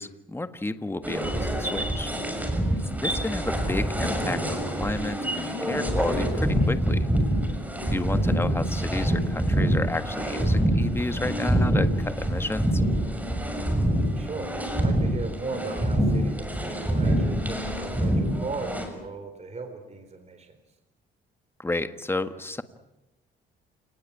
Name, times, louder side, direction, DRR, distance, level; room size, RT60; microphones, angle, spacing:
voice 1, 0.0-2.1 3.0-7.1 7.9-12.8 21.6-22.6, left 2 dB, 10° left, 10 dB, 1.6 m, -31 dB
sound 1, 1.0-18.9, equal, 10° right, 6.5 m, -26 dB
voice 2, 14.1-20.6, right 4 dB, 35° right, 6 dB, 4.0 m, -37 dB
29.0 x 19.0 x 8.6 m, 0.96 s
cardioid pair, 90°, 20 cm